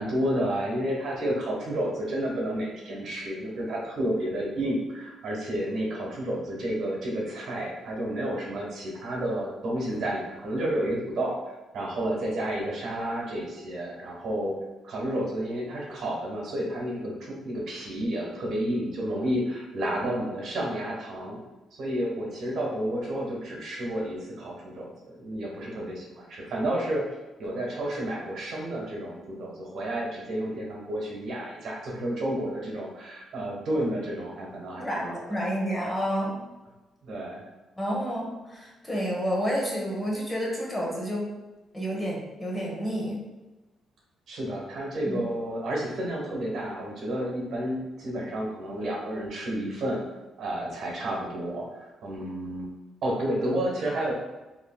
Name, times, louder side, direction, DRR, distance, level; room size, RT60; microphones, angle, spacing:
voice 1, 0.0-14.6 14.8-21.4 21.7-27.1 27.4-35.2 37.0-37.4 44.3-50.0 50.4-52.7 53.0-54.1, right 1 dB, 65° right, -2 dB, 1.1 m, -31 dB
voice 2, 34.8-36.4 37.8-41.3 41.7-43.2 45.0-45.2, equal, 15° left, -3 dB, 1.2 m, -30 dB
5.0 x 2.9 x 2.2 m, 1.1 s
cardioid pair, 90°, 0 cm